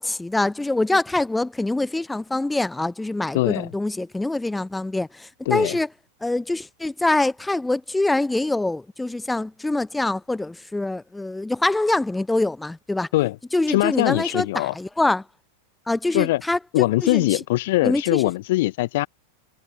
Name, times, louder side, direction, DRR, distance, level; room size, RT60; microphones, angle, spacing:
voice 1, 0.0-5.9 6.2-13.1 13.5-15.2 15.9-16.6 17.0-17.4 17.8-18.2, left 2 dB, 5° left, 0.6 m, -24 dB
voice 2, 3.3-3.7 5.5-5.8 13.1-13.4 13.7-14.7 16.1-16.4 16.7-19.1, left 18 dB, 50° left, 1.0 m, -22 dB
figure-of-eight pair, 90°, 0 cm